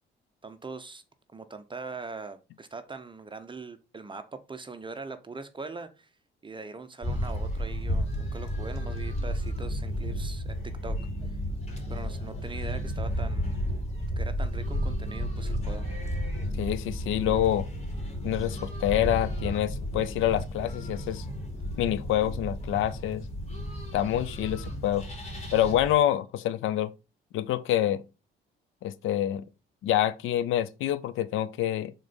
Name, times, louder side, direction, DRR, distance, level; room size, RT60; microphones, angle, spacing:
voice 1, 0.4-1.0 1.3-6.1 6.4-11.0 11.3-11.4 11.9-13.6 14.2-15.9, right 4 dB, 25° right, 0.8 m, -41 dB
sound 1, 7.0-25.9, equal, 30° left, 3.1 m, -33 dB
sound 2, 9.5-21.8, left 2 dB, 50° left, 2.0 m, -49 dB
voice 2, 16.6-17.7 18.2-21.2 21.8-23.2 23.9-25.0 25.5-26.9 27.3-28.0 28.8-29.4 29.8-31.9, left 12 dB, 85° left, 0.6 m, -27 dB
6.3 x 3.9 x 5.2 m
cardioid pair, 90°, 20 cm